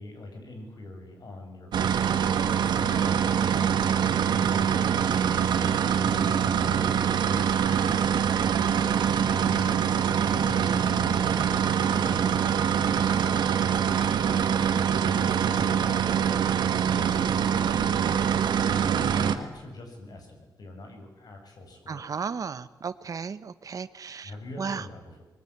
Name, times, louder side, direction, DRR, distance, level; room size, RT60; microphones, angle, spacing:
voice 1, 0.0-5.2 5.9-7.0 7.2-9.8 10.2-12.4 12.7-16.2 16.7-22.1 24.2-25.2, left 2 dB, 65° left, 4 dB, 7.3 m, -43 dB
sound 1, 1.7-19.3, right 8 dB, 90° right, 1.7 m, -24 dB
voice 2, 6.0-6.3 10.7-10.8 21.9-24.3 24.6-24.8, right 6 dB, 50° right, 12 dB, 1.2 m, -35 dB
24.5 x 21.0 x 9.7 m, 1.1 s
cardioid pair, 100°, 7 cm